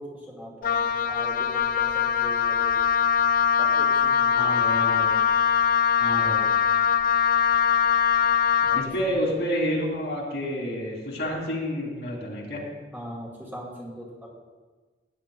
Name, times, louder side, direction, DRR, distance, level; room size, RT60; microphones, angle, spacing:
voice 1, 0.0-2.7 3.6-4.7 8.6-8.9 12.9-14.3, equal, 10° right, -3 dB, 2.2 m, -40 dB
Wind instrument woodwind instrument, 0.6-8.9, left 7 dB, 50° left, 0.4 m, -22 dB
voice 2, 4.3-5.1 6.0-6.4 8.7-12.6, equal, 70° left, -2 dB, 2.8 m, -29 dB
16.5 x 10.0 x 2.3 m, 1.3 s
head